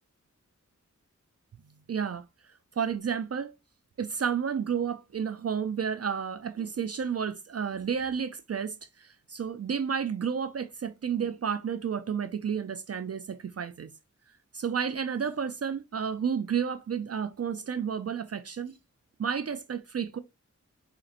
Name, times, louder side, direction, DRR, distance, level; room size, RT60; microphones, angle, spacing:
voice 1, 1.9-2.2 2.8-3.5 4.0-13.9 14.5-18.8 19.2-20.2, right 7 dB, 50° right, 0.4 m, -31 dB
4.8 x 2.9 x 2.5 m
wide cardioid pair, 40°, 31 cm